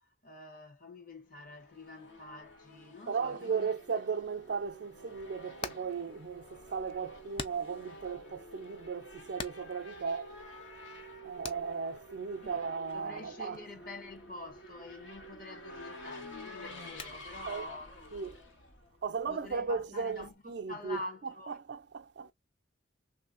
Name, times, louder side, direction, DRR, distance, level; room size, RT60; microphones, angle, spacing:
voice 1, 0.0-3.7 12.4-12.6 12.9-17.9 19.3-21.6, left 2 dB, 45° left, 1.0 m, -47 dB
Race car auto racing / Accelerating revving vroom, 1.3-19.5, equal, 70° left, 1.2 m, -50 dB
voice 2, 3.1-10.4 11.2-13.6 17.5-17.7 18.1-18.4 19.0-22.3, right 5 dB, 55° right, 0.4 m, -36 dB
Hammer, 5.1-20.3, left 4 dB, 30° left, 0.3 m, -50 dB
3.2 x 2.6 x 2.4 m
head